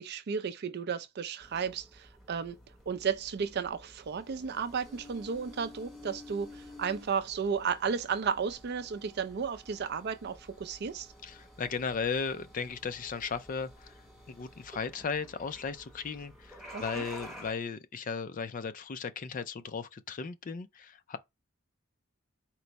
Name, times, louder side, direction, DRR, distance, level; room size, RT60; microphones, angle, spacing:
voice 1, 0.0-2.6 2.9-11.1 16.7-17.1, right 6 dB, 50° right, 0.4 m, -33 dB
sound 1, 1.4-17.5, left 1 dB, ahead, 1.0 m, -51 dB
voice 2, 11.2-14.0 14.3-21.2, left 5 dB, 40° left, 0.4 m, -36 dB
4.4 x 2.1 x 3.9 m
head